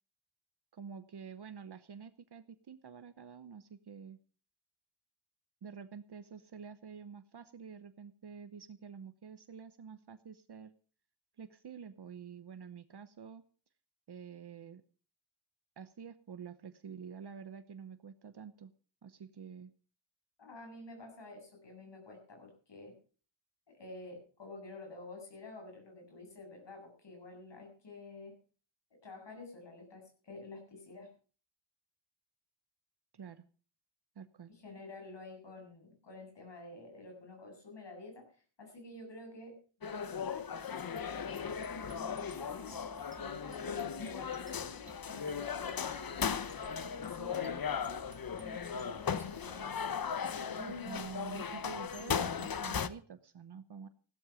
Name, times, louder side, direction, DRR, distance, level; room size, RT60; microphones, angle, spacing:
voice 1, 0.7-4.2 5.6-10.7 11.4-13.4 14.1-14.8 15.8-18.7 19.0-19.7 33.1-33.4 34.2-34.5 50.8-53.9, right 6 dB, 60° right, 11 dB, 0.9 m, -48 dB
voice 2, 20.4-23.0 23.7-28.4 28.9-31.1 34.5-39.5 39.8-46.5 46.9-49.9 50.3-51.1, left 3 dB, 65° left, 3 dB, 7.6 m, -49 dB
sound 1, 39.8-52.9, left 7 dB, 50° left, 0.9 m, -37 dB
sound 2, 41.0-49.6, right 2 dB, 25° right, 2.0 m, -57 dB
16.0 x 12.5 x 5.0 m, 0.39 s
wide cardioid pair, 110°, 46 cm